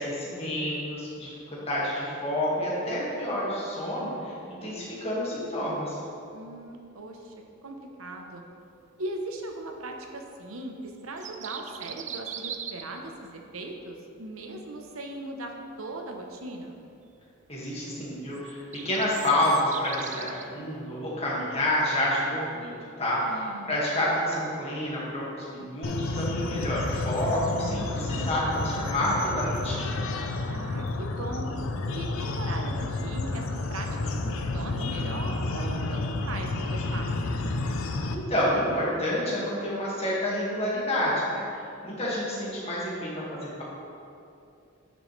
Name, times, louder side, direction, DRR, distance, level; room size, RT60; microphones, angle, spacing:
voice 1, 0.0-6.0 17.5-18.6 18.8-22.7 23.0-30.0 38.1-43.6, left 1 dB, 30° left, -6 dB, 1.9 m, -29 dB
voice 2, 6.3-7.3 7.6-8.4 9.0-16.8 23.3-23.8 30.5-31.5 31.9-37.1, right 2 dB, 85° right, 2 dB, 0.9 m, -39 dB
sound 1, 11.0-13.0 18.3-20.4, right 8 dB, 35° right, 0.3 m, -39 dB
sound 2, 25.8-38.1, left 2 dB, 75° left, 0.6 m, -30 dB
9.5 x 6.3 x 3.3 m, 2.7 s
head